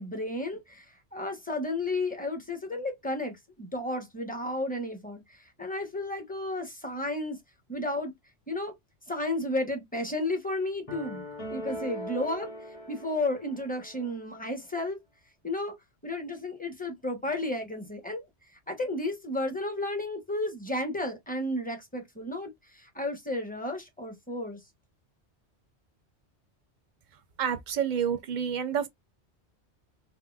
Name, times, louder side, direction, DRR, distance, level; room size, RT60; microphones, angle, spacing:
voice 1, 0.0-7.4 7.7-8.1 8.5-8.7 9.1-11.2 11.5-12.5 12.9-15.0 15.4-15.7 16.0-18.3 18.7-24.6, left 1 dB, 10° left, 0.7 m, -33 dB
sound 1, 10.9-14.1, left 1 dB, 30° left, 1.2 m, -40 dB
voice 2, 27.4-28.9, right 8 dB, 55° right, 0.6 m, -28 dB
3.6 x 2.1 x 2.2 m
omnidirectional pair, 1.1 m